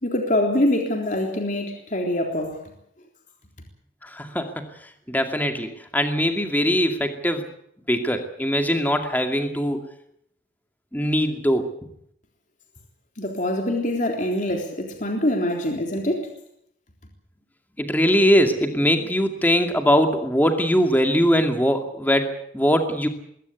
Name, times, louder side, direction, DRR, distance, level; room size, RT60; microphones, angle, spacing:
voice 1, 0.0-2.6 13.2-16.3, left 1 dB, 40° left, 3 dB, 3.6 m, -24 dB
voice 2, 4.0-4.7 5.1-7.4 7.9-9.9 10.9-11.7 17.8-23.1, equal, 10° left, 6 dB, 2.3 m, -21 dB
21.0 x 17.5 x 8.3 m, 0.70 s
head